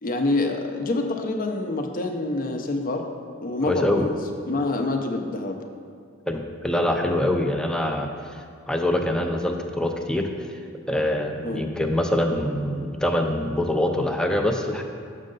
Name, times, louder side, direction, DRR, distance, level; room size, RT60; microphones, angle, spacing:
voice 1, 0.0-3.0 3.4-4.2 4.5-5.6 11.4-11.6, left 2 dB, 45° left, 4 dB, 0.6 m, -26 dB
voice 2, 3.7-4.1 6.3-8.1 8.7-10.3 10.9-14.8, left 1 dB, 5° left, 3 dB, 0.4 m, -24 dB
6.4 x 6.4 x 3.8 m, 2.2 s
head